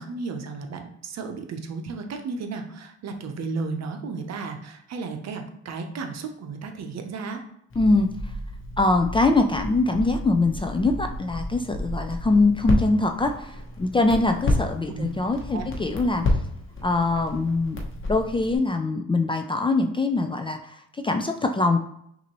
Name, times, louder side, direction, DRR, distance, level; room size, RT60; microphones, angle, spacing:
voice 1, 0.0-7.4 14.9-15.1 15.5-15.7, right 4 dB, 60° right, 5 dB, 0.8 m, -34 dB
Crackle, 7.7-18.6, left 1 dB, 40° left, 1.1 m, -31 dB
voice 2, 7.8-8.1 8.8-16.2 16.8-17.8 18.1-21.8, left 2 dB, 15° left, 5 dB, 0.3 m, -23 dB
5.7 x 2.7 x 3.0 m, 0.74 s
cardioid pair, 90°, 30 cm